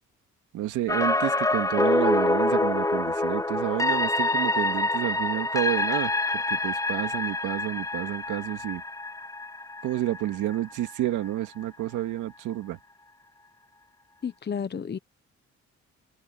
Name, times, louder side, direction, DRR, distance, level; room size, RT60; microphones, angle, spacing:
voice 1, 0.5-8.8 9.8-12.8, right 13 dB, 90° right, 2.2 m, -30 dB
sound 1, 0.9-10.9 11.3-11.4, left 2 dB, 10° left, 0.8 m, -26 dB
voice 2, 14.2-15.0, left 7 dB, 35° left, 1.1 m, -31 dB
open air
cardioid pair, 90°, 30 cm